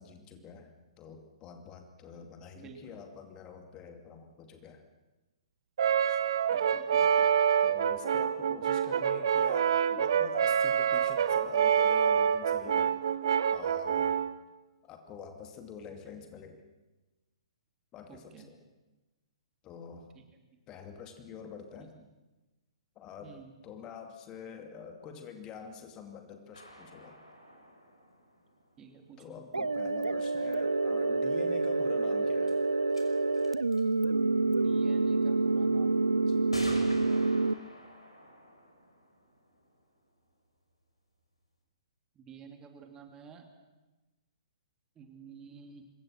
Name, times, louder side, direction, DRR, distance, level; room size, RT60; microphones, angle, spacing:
voice 1, 0.0-4.8 6.1-6.2 7.6-13.0 13.5-14.2 14.8-16.6 17.9-18.6 19.6-20.1 20.7-21.9 23.0-27.2 29.2-32.6 36.3-36.5, left 6 dB, 25° left, 5 dB, 2.5 m, -46 dB
voice 2, 2.5-3.0 6.5-7.3 16.0-16.2 18.1-18.5 20.1-20.2 21.8-21.9 23.2-23.5 28.8-29.7 34.5-36.0 36.8-37.3 42.1-43.5 45.0-45.8, right 6 dB, 20° right, 4 dB, 3.1 m, -51 dB
Brass instrument, 5.8-14.3, right 8 dB, 55° right, 1.2 m, -27 dB
sound 1, 26.5-29.3 31.9-32.0 32.5-32.6 32.9-33.0 33.3-33.9 35.2-35.3 36.5-40.1, equal, 85° left, 5.6 m, -47 dB
sound 2, 29.5-37.5, right 3 dB, 80° right, 0.8 m, -27 dB
26.5 x 23.5 x 6.2 m, 1.1 s
figure-of-eight pair, 120°, 3 cm